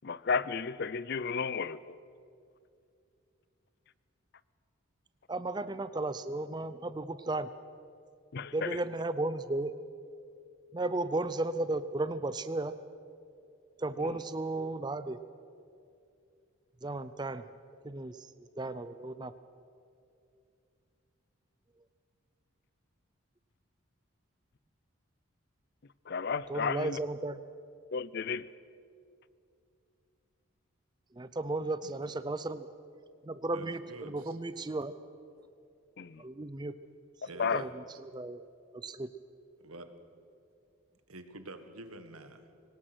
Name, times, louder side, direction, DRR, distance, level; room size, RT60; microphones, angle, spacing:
voice 1, 0.0-2.0 8.3-8.8 14.0-14.1 26.1-27.0 27.9-28.5 36.0-36.3 37.4-37.6, left 5 dB, 50° left, 0.5 m, -33 dB
voice 2, 5.3-7.5 8.5-9.7 10.7-12.7 13.8-15.2 16.8-17.4 17.8-19.3 26.5-27.4 31.1-32.7 33.2-34.9 36.2-36.7 37.5-38.4 38.7-39.1, right 2 dB, 20° right, 0.5 m, -34 dB
voice 3, 31.8-32.2 33.5-34.4 35.3-35.5 37.3-38.0 39.6-39.9 41.1-42.5, right 2 dB, 90° right, 1.6 m, -48 dB
23.5 x 19.0 x 6.2 m
head